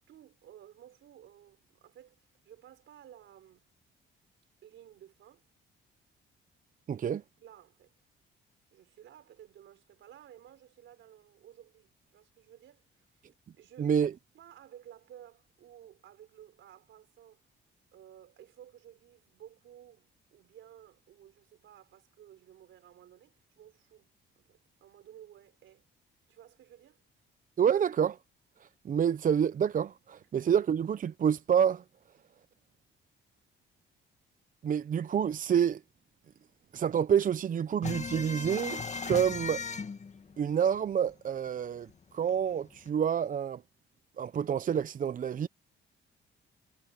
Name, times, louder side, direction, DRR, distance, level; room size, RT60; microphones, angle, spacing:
voice 1, 0.1-3.7 4.6-5.5 7.0-7.1 7.4-7.9 8.7-13.1 13.5-17.4 17.9-24.1 24.4-25.9 26.3-27.0, right 11 dB, 75° right, 4.3 m, -55 dB
voice 2, 6.9-7.2 13.8-14.1 27.6-28.2 28.8-31.8 34.6-35.8 36.7-39.6 40.4-43.6 44.2-45.5, right 8 dB, 40° right, 0.6 m, -28 dB
sound 1, 37.8-41.1 41.5-41.6 41.9-42.9, left 5 dB, 35° left, 1.8 m, -37 dB
cardioid pair, 90°, 20 cm